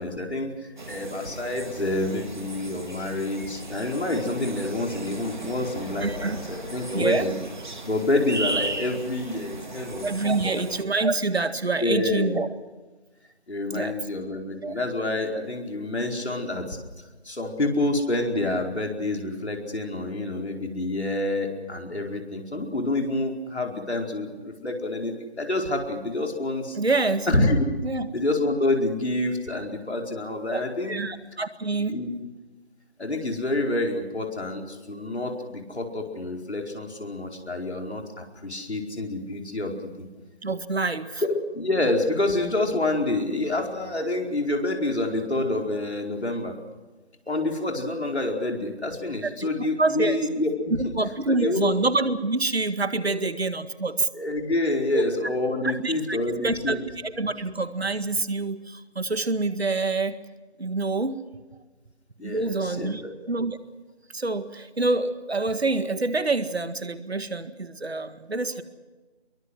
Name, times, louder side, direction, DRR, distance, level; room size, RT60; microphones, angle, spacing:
voice 1, 0.0-7.4 7.8-10.1 11.8-12.4 13.5-16.8 17.2-26.8 27.3-27.6 28.1-31.0 31.9-32.1 33.0-39.9 41.2-46.5 47.3-50.9 51.3-51.8 53.0-53.2 54.1-56.8 62.2-63.1, left 2 dB, 85° left, 2 dB, 4.8 m, -27 dB
sound 1, 0.8-10.8, right 2 dB, 45° right, 2.0 m, -36 dB
voice 2, 6.0-6.4 6.9-7.3 10.0-12.5 13.7-14.0 14.6-14.8 26.8-27.5 27.8-28.1 30.5-30.6 30.9-32.0 40.4-41.2 49.2-49.5 49.8-50.2 51.0-54.1 54.9-55.1 55.6-56.2 56.4-56.8 57.0-60.2 60.6-61.2 62.2-63.0 63.3-63.6 64.1-68.6, right 3 dB, 75° right, 11 dB, 1.9 m, -26 dB
23.0 x 22.5 x 6.3 m, 1.2 s
figure-of-eight pair, 175°, 32 cm